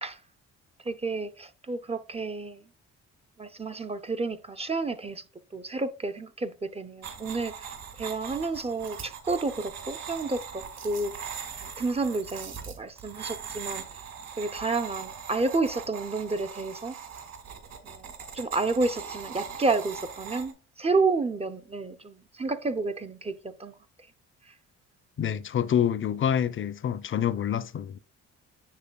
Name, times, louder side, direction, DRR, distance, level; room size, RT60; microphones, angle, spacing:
voice 1, 0.8-2.6 3.4-5.2 5.5-11.1 11.6-13.8 14.4-17.0 17.8-23.8, right 3 dB, 20° right, 0.5 m, -30 dB
sound 1, 7.0-20.5, right 7 dB, 55° right, 1.9 m, -40 dB
voice 2, 25.2-28.0, left 9 dB, 40° left, 0.6 m, -27 dB
7.4 x 6.4 x 2.3 m
cardioid pair, 90°, 30 cm